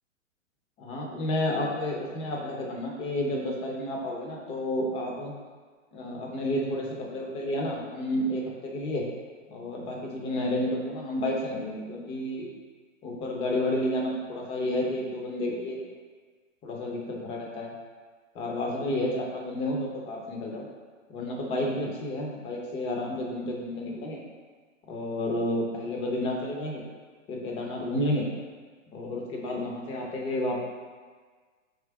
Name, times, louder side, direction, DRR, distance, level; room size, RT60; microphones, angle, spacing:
voice 1, 0.8-5.3 5.9-9.0 9.5-12.5 13.0-15.8 16.6-17.7 18.3-20.7 21.1-24.2 24.9-26.8 27.3-28.3 28.9-30.6, left 1 dB, 15° left, -1 dB, 0.5 m, -31 dB
3.5 x 3.2 x 4.4 m, 1.5 s
hypercardioid pair, 120°, 39 cm